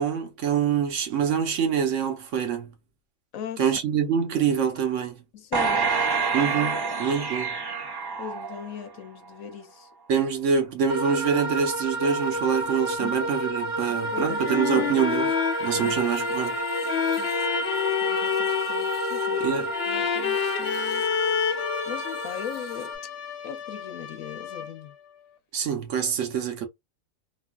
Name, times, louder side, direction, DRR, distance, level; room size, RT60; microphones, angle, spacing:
voice 1, 0.0-2.7 3.6-5.2 6.3-7.5 10.1-15.3 15.6-16.6 19.4-19.7 25.5-26.7, right 7 dB, 70° right, 1.1 m, -25 dB
voice 2, 3.3-3.8 5.3-5.9 8.1-9.9 13.0-13.2 13.9-14.4 14.7-14.9 15.7-16.0 17.2-17.4 18.0-19.5 19.9-21.0 21.9-22.9 23.4-24.9, left 8 dB, 85° left, 1.1 m, -39 dB
sound 1, 5.5-9.0 9.4-9.5, right 5 dB, 40° right, 0.3 m, -27 dB
sound 2, 10.9-22.9, right 2 dB, 25° left, 1.0 m, -31 dB
sound 3, 14.1-24.9, left 8 dB, 65° left, 0.7 m, -29 dB
3.0 x 2.4 x 2.3 m
omnidirectional pair, 1.4 m